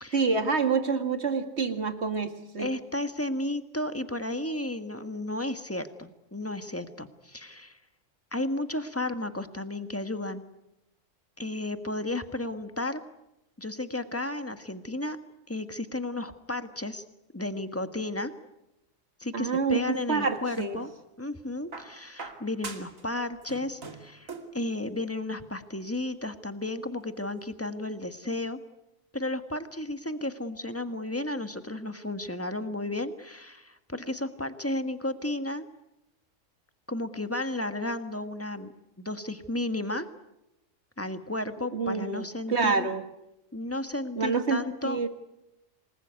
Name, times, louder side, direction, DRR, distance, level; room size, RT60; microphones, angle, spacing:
voice 1, 0.1-2.7 19.3-20.8 41.7-43.0 44.2-45.1, right 4 dB, 55° right, 8 dB, 2.2 m, -27 dB
voice 2, 2.6-7.8 8.3-10.4 11.4-13.0 13.6-15.2 15.5-17.0 17.3-18.3 19.2-20.9 21.2-28.6 29.1-35.6 36.9-38.7 39.0-40.1 41.0-42.9 43.5-45.0, left 1 dB, 10° left, 9 dB, 1.4 m, -33 dB
sound 1, 19.9-20.9 21.7-23.1 23.3-24.6 25.7-25.8, right 4 dB, 85° right, 2.9 m, -43 dB
27.0 x 20.5 x 9.5 m, 0.91 s
omnidirectional pair, 1.4 m